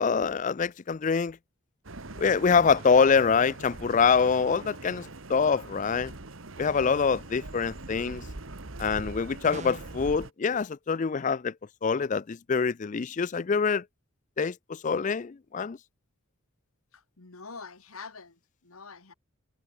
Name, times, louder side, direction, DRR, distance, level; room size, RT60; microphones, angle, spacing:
voice 1, 0.0-1.4 2.2-6.1 6.6-8.2 8.8-11.5 11.8-13.8 14.4-15.8, left 5 dB, 35° left, 0.4 m, -25 dB
sound 1, 1.8-10.3, right 2 dB, 70° right, 1.8 m, -42 dB
sound 2, 9.5-10.1, right 3 dB, 35° right, 1.0 m, -41 dB
voice 2, 16.9-19.1, left 4 dB, 90° left, 2.1 m, -45 dB
head